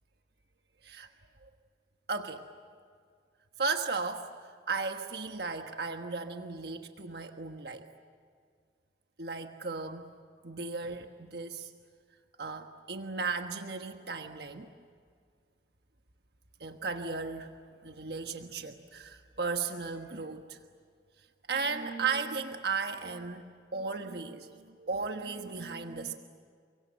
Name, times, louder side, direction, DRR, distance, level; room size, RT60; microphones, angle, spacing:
voice 1, 2.1-2.5 3.6-4.3 4.7-7.9 9.2-10.1 10.4-11.7 12.4-14.7 16.6-17.5 17.8-20.6 21.5-23.4 23.7-26.2, right 4 dB, 65° right, 5 dB, 1.3 m, -35 dB
30.0 x 24.0 x 7.8 m, 2.1 s
head